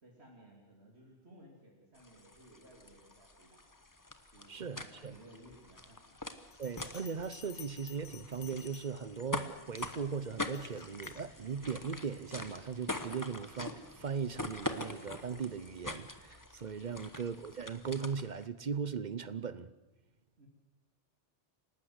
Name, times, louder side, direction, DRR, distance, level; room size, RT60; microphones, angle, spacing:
voice 1, 0.0-3.7 4.3-6.2 20.4-20.5, right 1 dB, 65° right, 3.4 m, -58 dB
sound 1, 1.9-18.5, left 2 dB, 15° left, 1.1 m, -44 dB
voice 2, 4.5-5.2 6.6-19.7, right 6 dB, 45° right, 0.8 m, -38 dB
Bell, 6.5-9.2 9.8-10.1 10.5-11.3, left 8 dB, 65° left, 1.1 m, -54 dB
sound 2, 9.7-16.0, right 1 dB, 15° right, 1.4 m, -55 dB
27.5 x 12.5 x 8.0 m
omnidirectional pair, 1.2 m